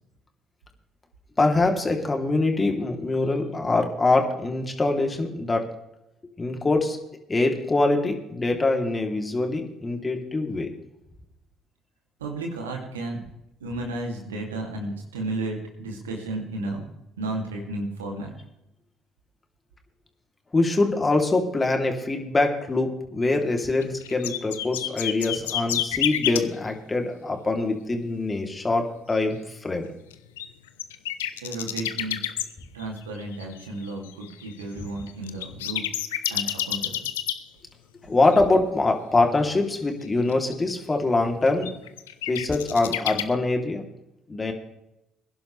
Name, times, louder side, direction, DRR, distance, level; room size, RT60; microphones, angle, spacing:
voice 1, 1.4-5.7 6.4-7.0 7.3-10.7 20.5-29.9 38.1-41.7 42.3-43.8 44.3-44.5, left 2 dB, 25° left, 3 dB, 3.1 m, -24 dB
voice 2, 12.2-13.2 13.6-16.9 17.2-18.3 31.4-32.2 32.7-35.8 36.3-37.0, right 2 dB, 90° right, 1 dB, 2.6 m, -33 dB
sound 1, 23.6-26.4 30.1-32.4 32.8-37.4 38.2-38.4 40.0-40.5 41.6-43.2, left 12 dB, 85° left, 0.7 m, -29 dB
21.5 x 11.0 x 3.3 m, 0.87 s
hypercardioid pair, 50°, 0 cm